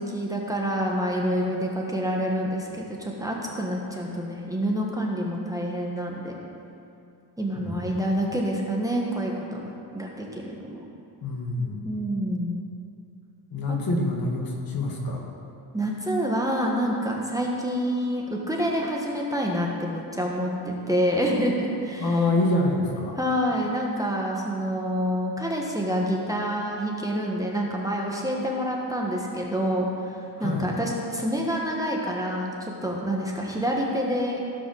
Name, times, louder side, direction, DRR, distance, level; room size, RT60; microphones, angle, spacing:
voice 1, 0.0-6.4 7.4-10.8 11.8-12.6 13.7-13.8 15.7-22.1 23.2-34.4, equal, 10° right, -2 dB, 1.3 m, -27 dB
voice 2, 7.6-8.0 11.2-11.9 13.5-15.2 22.0-23.2 30.4-30.7, left 2 dB, 50° left, 0 dB, 1.9 m, -26 dB
15.5 x 5.3 x 6.3 m, 2.7 s
cardioid pair, 125°, 45 cm